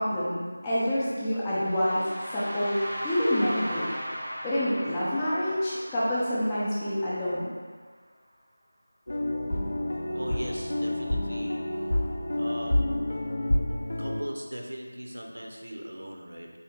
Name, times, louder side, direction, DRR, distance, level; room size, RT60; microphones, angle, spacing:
voice 1, 0.0-2.8 3.0-3.9 4.4-7.5, equal, 10° left, -10 dB, 0.5 m, -27 dB
sound 1, 1.5-7.4, equal, 15° right, 0.9 m, -37 dB
sound 2, 9.1-14.2, left 1 dB, 60° left, 0.5 m, -28 dB
voice 2, 10.1-11.6 12.3-12.8 14.0-16.5, equal, 90° right, 1 dB, 0.6 m, -38 dB
4.2 x 2.7 x 3.4 m, 1.5 s
figure-of-eight pair, 175°, 0 cm